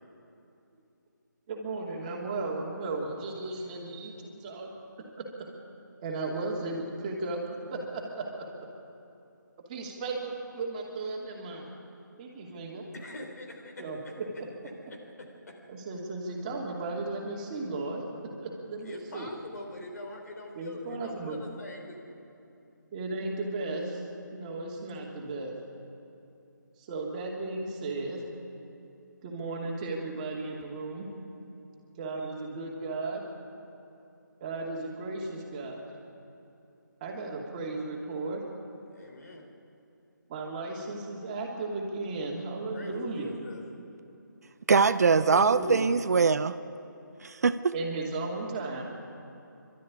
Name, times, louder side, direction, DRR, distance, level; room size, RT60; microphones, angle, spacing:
voice 1, 1.5-4.7 5.0-5.1 6.0-7.4 7.7-8.5 9.7-11.7 12.2-12.9 13.8-14.5 15.7-19.3 20.6-21.4 22.9-24.0 24.3-25.5 26.8-28.2 29.2-31.1 32.0-33.2 34.4-35.9 37.0-38.4 40.3-43.3 45.1-45.9 47.7-48.8, right 3 dB, 25° right, -2 dB, 2.8 m, -35 dB
voice 2, 12.9-14.1 14.9-15.5 18.8-22.1 38.9-39.5 42.7-43.6, left 2 dB, 55° left, 2 dB, 4.0 m, -44 dB
voice 3, 44.7-46.5 47.2-47.7, right 5 dB, 50° right, 13 dB, 0.6 m, -22 dB
23.5 x 13.0 x 9.7 m, 2.8 s
figure-of-eight pair, 155°, 11 cm